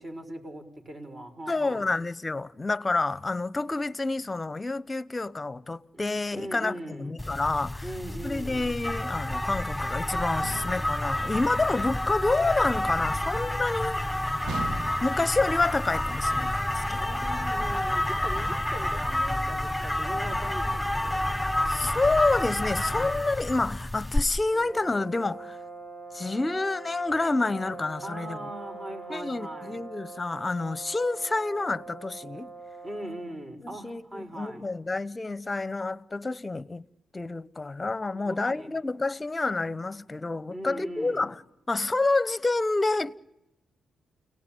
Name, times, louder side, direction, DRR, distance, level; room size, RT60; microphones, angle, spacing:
voice 1, 0.0-1.9 6.3-7.2 7.8-8.6 17.0-21.3 28.0-29.8 32.8-34.6 38.1-38.7 40.5-41.3, right 1 dB, 35° right, 6.3 m, -40 dB
voice 2, 1.5-7.9 8.2-14.0 15.0-17.1 21.7-25.6 26.1-28.5 29.1-32.5 33.6-36.8 37.1-41.4 41.7-43.2, left 3 dB, 30° left, 0.9 m, -28 dB
sound 1, 7.2-24.2, left 1 dB, ahead, 4.5 m, -29 dB
sound 2, 10.4-11.0 14.5-15.3, right 4 dB, 80° right, 1.8 m, -37 dB
sound 3, 24.5-33.5, right 3 dB, 55° right, 4.8 m, -43 dB
30.0 x 18.5 x 9.1 m
supercardioid pair, 55°, 0 cm